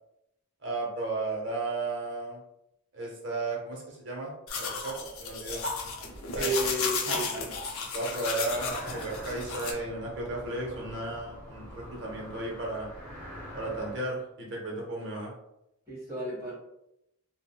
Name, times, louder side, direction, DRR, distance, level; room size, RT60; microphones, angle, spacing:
voice 1, 0.6-2.4 2.9-5.6 6.4-6.7 7.9-12.9 13.5-15.3, right 2 dB, 55° right, -2 dB, 0.7 m, -34 dB
sound 1, 4.5-9.7, left 4 dB, 70° left, 0.5 m, -33 dB
voice 2, 6.3-7.5 15.9-16.5, right 1 dB, 15° right, -8 dB, 1.3 m, -32 dB
sound 2, 8.5-13.9, equal, 5° left, 1.1 m, -44 dB
3.7 x 2.0 x 2.2 m, 0.83 s
head